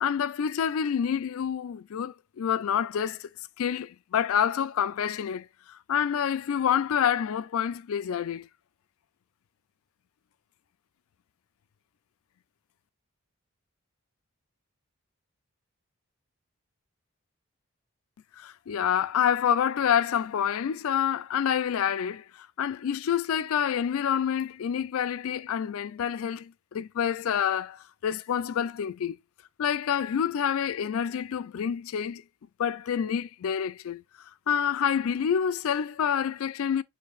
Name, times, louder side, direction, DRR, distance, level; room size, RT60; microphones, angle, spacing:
voice 1, 0.0-3.3 3.6-8.5 18.4-29.2 29.6-32.2 32.6-34.0 34.5-36.8, left 8 dB, 75° left, 0.3 m, -27 dB
6.5 x 3.3 x 2.3 m
head